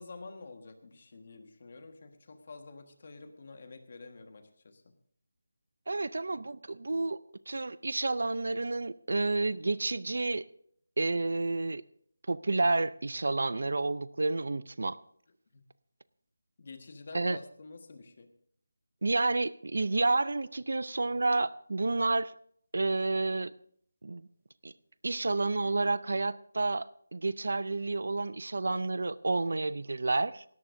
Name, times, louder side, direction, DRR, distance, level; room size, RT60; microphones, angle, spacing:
voice 1, 0.0-4.9 15.5-15.6 16.6-18.3, left 3 dB, 35° left, 7 dB, 1.4 m, -48 dB
voice 2, 5.9-7.2 7.5-10.4 11.0-11.8 12.3-15.0 17.1-17.4 19.0-22.3 22.7-23.5 24.0-24.3 24.6-24.7 25.0-30.4, right 3 dB, 55° right, 18 dB, 0.5 m, -30 dB
18.5 x 17.0 x 2.6 m, 0.63 s
figure-of-eight pair, 180°, 0 cm